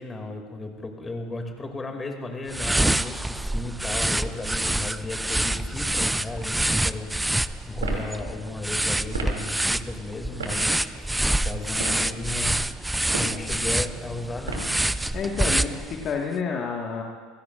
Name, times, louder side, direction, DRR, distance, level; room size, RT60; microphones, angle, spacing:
voice 1, 0.0-14.7, left 2 dB, 20° left, 3 dB, 2.6 m, -35 dB
sound 1, 2.5-16.2, right 1 dB, 5° right, 0.5 m, -26 dB
sound 2, 7.8-8.1 9.1-9.4 10.4-10.6 11.7-12.1 13.0-13.4 14.5-14.8, right 3 dB, 85° right, 2.7 m, -32 dB
voice 2, 15.1-17.0, left 5 dB, 40° left, 0 dB, 1.8 m, -29 dB
28.5 x 16.5 x 2.6 m, 1.5 s
hypercardioid pair, 80°, 0 cm